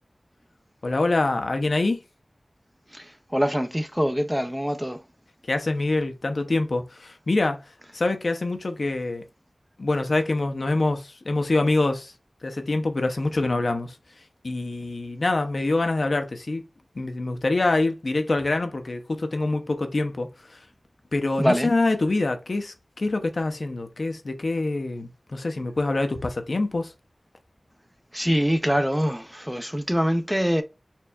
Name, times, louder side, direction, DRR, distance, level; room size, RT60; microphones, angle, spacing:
voice 1, 0.8-2.0 5.5-9.2 9.8-12.1 12.4-14.0 14.4-16.6 16.9-20.6 21.1-26.9, left 2 dB, 65° left, 0.6 m, -25 dB
voice 2, 2.9-5.0 21.4-21.7 28.1-30.6, equal, 5° right, 0.5 m, -24 dB
4.4 x 3.3 x 2.3 m
wide cardioid pair, 65°, 0 cm